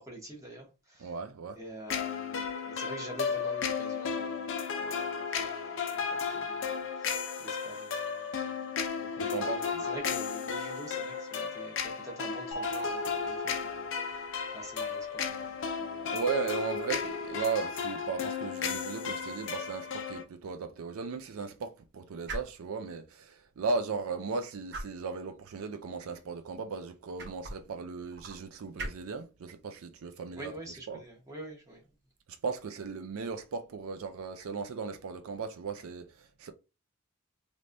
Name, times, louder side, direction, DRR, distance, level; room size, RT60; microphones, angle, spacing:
voice 1, 0.0-1.1 1.5-16.2 30.3-31.8, right 1 dB, 15° right, 1.2 m, -47 dB
voice 2, 1.0-1.6 9.2-9.8 16.1-30.5 30.9-31.0 32.4-36.5, right 5 dB, 75° right, 0.4 m, -36 dB
sound 1, 1.9-20.2, left 6 dB, 60° left, 0.5 m, -34 dB
sound 2, 12.5-14.7, right 3 dB, 80° left, 1.0 m, -41 dB
sound 3, 21.8-32.8, right 2 dB, 50° right, 1.0 m, -48 dB
3.3 x 3.1 x 2.6 m
head